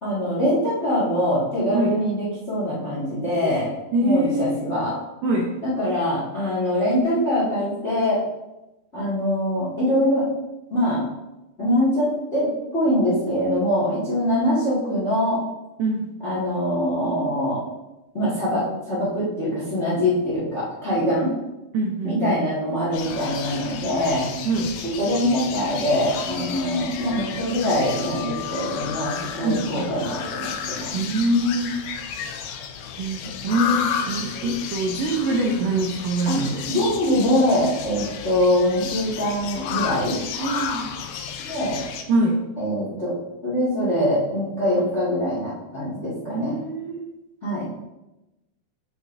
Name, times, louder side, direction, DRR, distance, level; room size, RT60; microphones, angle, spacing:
voice 1, 0.0-3.7 4.0-4.9 5.6-8.2 8.9-10.3 10.7-11.0 11.6-15.4 16.2-17.6 18.1-21.3 22.0-24.3 25.0-30.9 36.2-36.4 36.7-40.2 41.5-41.8 42.6-43.2 43.4-46.5 47.4-47.6, equal, 35° left, -8 dB, 1.1 m, -23 dB
voice 2, 3.9-4.6 5.2-5.5 15.8-16.0 21.7-22.4 24.4-24.8 29.4-29.9 30.9-31.8 33.0-36.9 40.4-41.0 42.1-42.4 44.7-44.9 46.3-47.1, right 1 dB, 80° right, 0 dB, 2.0 m, -24 dB
sound 1, 22.9-42.0, left 7 dB, 80° left, 2.2 m, -32 dB
8.0 x 5.9 x 2.6 m, 0.98 s
omnidirectional pair, 4.5 m